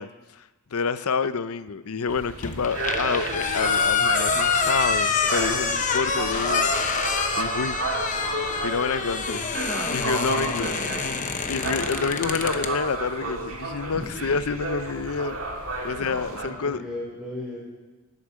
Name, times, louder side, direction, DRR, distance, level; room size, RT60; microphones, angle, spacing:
voice 1, 0.0-7.8 8.6-9.4 9.9-10.7 11.5-15.4 15.8-16.8, left 5 dB, 75° left, 14 dB, 0.6 m, -28 dB
sound 1, 2.1-16.5, right 2 dB, 65° right, 2.0 m, -32 dB
sound 2, 2.4-12.7, left 5 dB, 35° left, 0.9 m, -26 dB
voice 2, 10.3-11.2 13.9-14.2 16.6-17.6, left 1 dB, 5° right, -5 dB, 4.0 m, -37 dB
18.5 x 8.3 x 6.3 m, 1.2 s
head